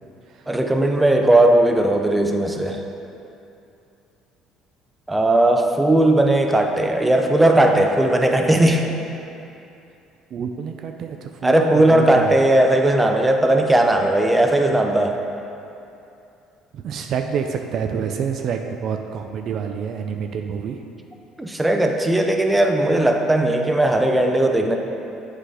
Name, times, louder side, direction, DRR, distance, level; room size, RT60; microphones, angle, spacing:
voice 1, 0.5-2.8 5.1-8.9 11.4-15.2 17.9-18.0 21.4-24.8, right 1 dB, 10° right, 3 dB, 0.7 m, -17 dB
voice 2, 10.3-12.3 16.7-20.8, right 7 dB, 60° right, 5 dB, 0.4 m, -27 dB
8.2 x 3.9 x 4.9 m, 2.7 s
supercardioid pair, 80°, 0 cm